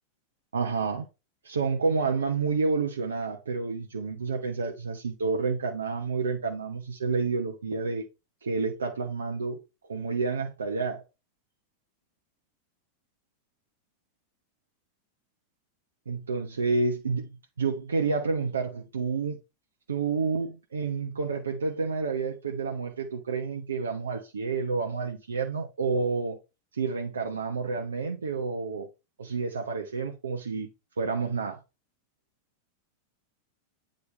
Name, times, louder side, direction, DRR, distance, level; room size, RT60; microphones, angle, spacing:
voice 1, 0.5-1.0 1.4-8.0 8.4-9.6 9.9-11.0 16.1-17.3 17.6-19.4 19.9-26.4 26.7-28.9 29.2-30.7 31.0-31.6, right 4 dB, 70° right, 1.1 m, -29 dB
9.5 x 3.9 x 3.4 m
figure-of-eight pair, 90°, 0 cm